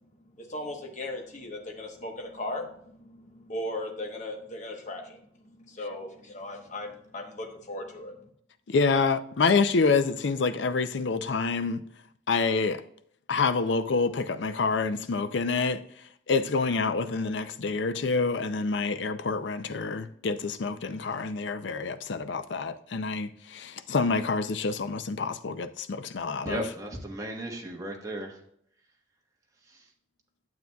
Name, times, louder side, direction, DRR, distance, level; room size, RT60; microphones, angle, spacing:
voice 1, 0.4-5.2 5.4-8.2, left 1 dB, 40° left, 1.1 m, -37 dB
voice 2, 8.7-11.8 12.3-12.8 13.3-15.8 16.3-26.6, left 4 dB, 75° left, 0.5 m, -27 dB
voice 3, 26.4-28.4 29.7-29.8, right 1 dB, 20° right, 1.3 m, -35 dB
9.4 x 7.6 x 2.3 m
head